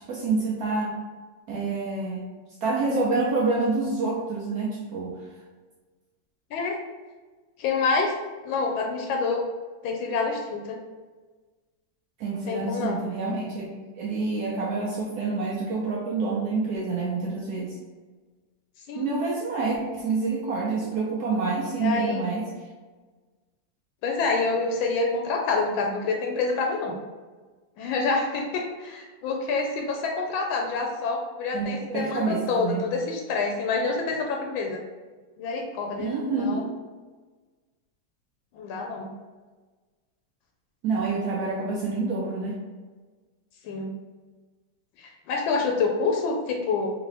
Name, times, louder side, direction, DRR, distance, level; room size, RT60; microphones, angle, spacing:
voice 1, 0.1-1.0 1.5-2.2 2.6-5.1 12.2-17.8 18.9-22.4 31.5-32.9 36.0-36.7 40.8-42.6, right 3 dB, 65° right, -2 dB, 1.0 m, -27 dB
voice 2, 7.6-8.1 8.4-9.4 9.8-10.8 12.5-13.0 18.9-19.1 21.8-22.2 24.0-27.0 27.8-34.8 35.4-36.6 38.5-39.1 43.6-43.9 45.0-46.9, left 4 dB, 85° left, 1 dB, 1.4 m, -27 dB
3.8 x 3.0 x 3.2 m, 1.3 s
omnidirectional pair, 2.1 m